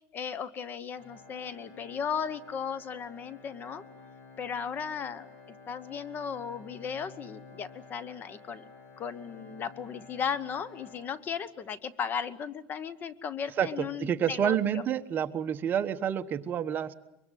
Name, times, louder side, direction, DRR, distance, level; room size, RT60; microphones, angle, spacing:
voice 1, 0.1-3.8 4.4-5.3 5.7-8.7 9.0-14.8, left 7 dB, 30° left, 17 dB, 1.0 m, -36 dB
Organ, 0.9-11.7, left 4 dB, 55° left, 6.8 m, -52 dB
voice 2, 14.0-16.9, right 9 dB, 30° right, 9 dB, 1.1 m, -28 dB
24.0 x 23.0 x 9.3 m, 0.87 s
cardioid pair, 155°, 6 cm